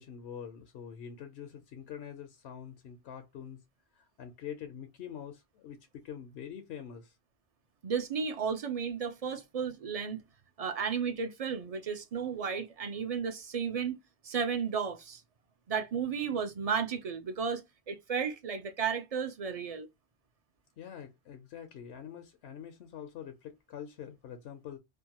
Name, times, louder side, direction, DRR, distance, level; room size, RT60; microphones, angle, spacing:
voice 1, 0.0-3.6 3.9-7.2 20.8-24.8, left 8 dB, 85° left, 0.8 m, -45 dB
voice 2, 7.8-10.2 10.6-14.0 14.2-15.2 15.7-19.9, right 6 dB, 55° right, 0.4 m, -33 dB
2.6 x 2.2 x 2.8 m
omnidirectional pair, 1.1 m